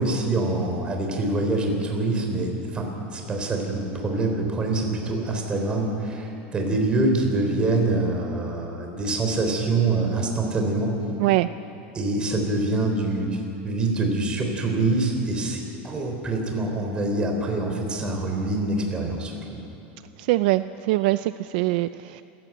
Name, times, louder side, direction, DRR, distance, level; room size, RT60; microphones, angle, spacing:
voice 1, 0.0-10.9 11.9-19.6, right 2 dB, 15° right, 2 dB, 3.6 m, -25 dB
voice 2, 20.2-22.2, right 18 dB, 55° right, 13 dB, 0.4 m, -23 dB
26.0 x 14.5 x 9.2 m, 2.8 s
supercardioid pair, 170°, 6 cm